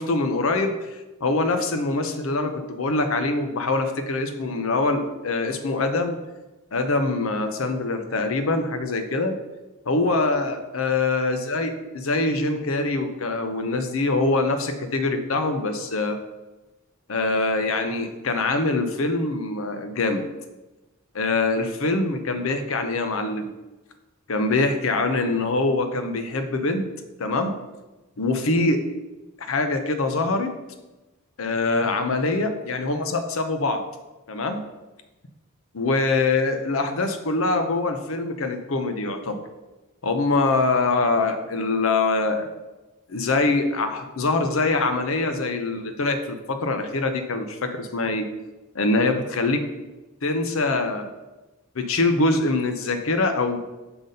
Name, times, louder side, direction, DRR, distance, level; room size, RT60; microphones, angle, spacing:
voice 1, 0.0-6.2 6.7-9.4 9.9-16.2 17.1-20.2 21.1-23.5 24.3-26.9 27.2-27.5 28.2-28.8 29.5-30.5 31.4-33.8 34.3-34.6 35.7-39.4 40.0-42.5 43.1-48.3 48.7-49.6 50.2-51.1 51.7-53.6, left 3 dB, 70° left, 7 dB, 0.7 m, -24 dB
5.9 x 3.9 x 5.2 m, 1.1 s
head